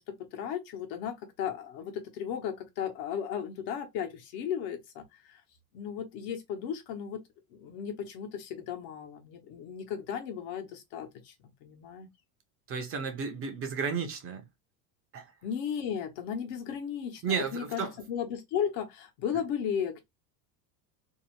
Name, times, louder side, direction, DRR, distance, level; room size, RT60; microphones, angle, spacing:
voice 1, 0.0-5.4 5.7-7.2 7.5-11.3 11.6-12.1 15.4-20.0, left 8 dB, 70° left, 1.0 m, -35 dB
voice 2, 12.7-14.5 15.1-15.3 17.2-17.9, right 6 dB, 30° right, 0.5 m, -33 dB
2.8 x 2.1 x 3.0 m
supercardioid pair, 140°, 47 cm